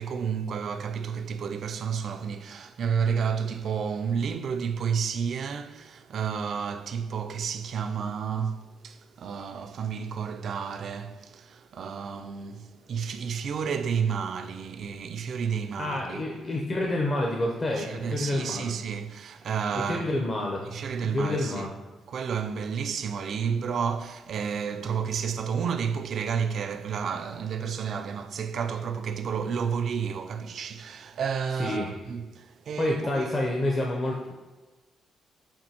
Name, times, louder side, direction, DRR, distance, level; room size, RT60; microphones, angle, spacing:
voice 1, 0.0-16.2 17.8-20.1 20.7-21.6 22.1-33.3, right 6 dB, 60° right, 0.3 m, -31 dB
voice 2, 15.8-18.7 19.7-21.7 31.6-31.9 32.8-34.3, left 1 dB, 35° left, 0.6 m, -28 dB
7.0 x 2.6 x 2.8 m
cardioid pair, 90°, 0 cm